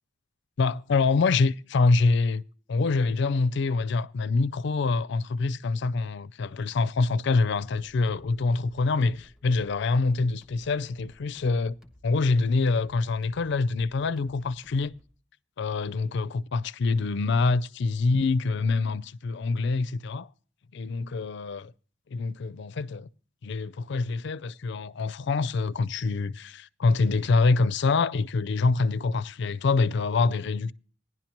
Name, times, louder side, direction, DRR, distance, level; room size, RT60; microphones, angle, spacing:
voice 1, 0.6-2.4 2.7-11.7 12.0-14.9 15.6-20.3 20.7-21.7 22.1-23.1 23.4-30.7, left 3 dB, 65° left, 0.4 m, -25 dB
sound 1, 7.6-15.1, left 1 dB, ahead, 1.4 m, -56 dB
17.0 x 11.0 x 3.0 m
head